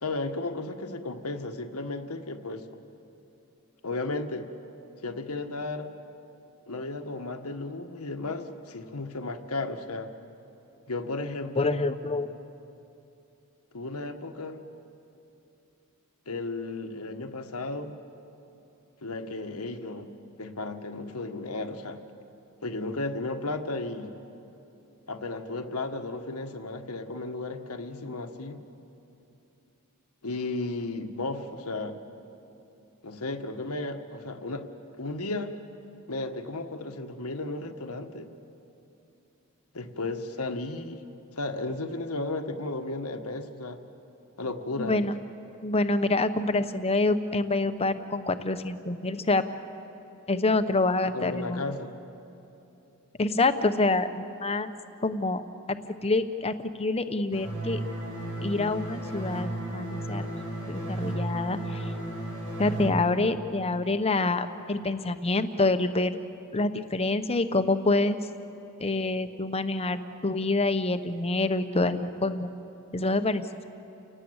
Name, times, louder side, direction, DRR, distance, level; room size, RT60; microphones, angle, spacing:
voice 1, 0.0-2.7 3.8-4.5 5.0-5.9 6.7-10.1 10.9-11.8 13.7-14.6 16.3-17.9 19.0-20.1 20.4-22.0 22.6-24.1 25.1-28.6 30.2-32.0 33.0-34.7 34.9-35.6 36.1-38.3 39.7-41.0 41.3-43.8 44.4-45.1 51.1-51.9, left 2 dB, 85° left, 6 dB, 1.5 m, -34 dB
voice 2, 11.6-12.3 44.8-45.1 45.6-49.4 50.3-51.6 53.2-54.7 55.0-57.8 58.4-60.3 60.7-61.9 62.6-66.2 66.5-68.3 68.8-72.5 72.9-73.6, left 2 dB, 30° left, 10 dB, 0.9 m, -27 dB
sound 1, 57.3-62.9, right 1 dB, 85° right, 6.2 m, -34 dB
29.5 x 18.0 x 8.1 m, 2.9 s
head